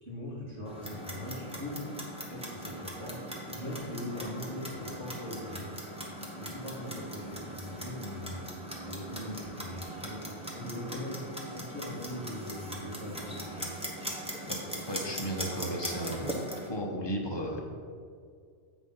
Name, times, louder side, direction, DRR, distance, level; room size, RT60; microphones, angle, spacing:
voice 1, 0.0-1.8 2.3-5.9 6.4-10.2 10.5-13.7, left 1 dB, 65° right, -7 dB, 2.5 m, -41 dB
Clock, 0.7-16.7, right 1 dB, 5° right, 1.0 m, -40 dB
voice 2, 14.9-16.3 16.7-17.6, equal, 25° left, 0 dB, 0.9 m, -34 dB
8.2 x 4.1 x 5.6 m, 2.1 s
omnidirectional pair, 1.2 m